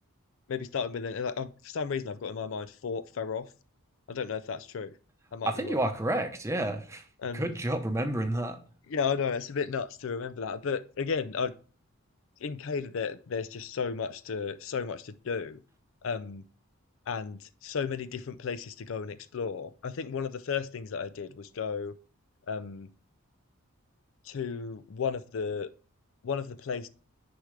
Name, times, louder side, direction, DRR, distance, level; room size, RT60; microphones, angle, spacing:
voice 1, 0.5-3.5 4.1-4.9 5.3-5.8 7.2-7.5 8.9-11.5 12.4-15.6 16.0-16.4 17.1-21.9 22.5-22.9 24.2-25.7 26.2-26.9, left 6 dB, 60° left, 14 dB, 0.4 m, -33 dB
voice 2, 5.5-7.0 7.3-8.6, right 1 dB, 15° right, 6 dB, 0.8 m, -30 dB
10.0 x 4.8 x 3.2 m, 0.38 s
head